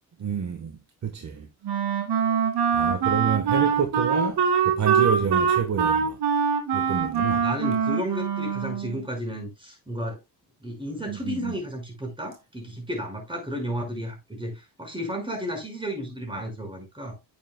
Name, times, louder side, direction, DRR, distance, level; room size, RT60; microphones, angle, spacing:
voice 1, 0.2-0.7 1.0-1.5 2.7-4.4 4.6-6.2 6.7-7.4 11.1-11.5, right 7 dB, 45° right, 1.3 m, -28 dB
Wind instrument woodwind instrument, 1.6-9.0, right 6 dB, 80° right, 2.3 m, -24 dB
voice 2, 7.3-10.2 10.6-17.2, equal, 10° right, 5.2 m, -33 dB
9.8 x 8.6 x 2.2 m
cardioid pair, 120°, 40 cm